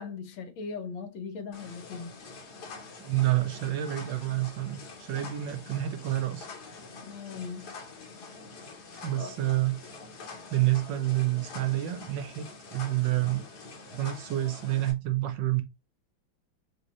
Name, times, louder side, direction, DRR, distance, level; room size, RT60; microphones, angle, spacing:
voice 1, 0.0-2.1 7.0-7.7 9.2-9.3, left 5 dB, 75° left, 1.6 m, -39 dB
sound 1, 1.5-14.9, left 4 dB, 55° left, 1.5 m, -46 dB
voice 2, 3.0-6.5 9.0-9.8 10.5-13.5 13.9-15.6, right 15 dB, 75° right, 1.2 m, -28 dB
4.5 x 2.7 x 3.0 m
omnidirectional pair, 2.2 m